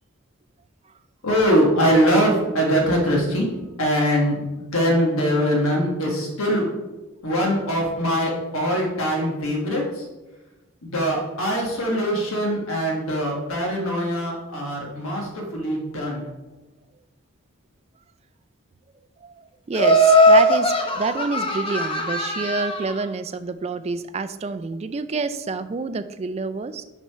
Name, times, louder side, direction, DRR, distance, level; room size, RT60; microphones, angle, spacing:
voice 1, 1.2-3.5 3.8-6.6 7.2-10.0 10.8-16.2, equal, 80° left, -1 dB, 1.4 m, -22 dB
voice 2, 19.2-26.8, right 4 dB, 30° right, 11 dB, 0.3 m, -28 dB
Laughter, 19.7-23.0, equal, 25° left, 0.7 m, -18 dB
5.9 x 4.3 x 5.6 m, 1.1 s
head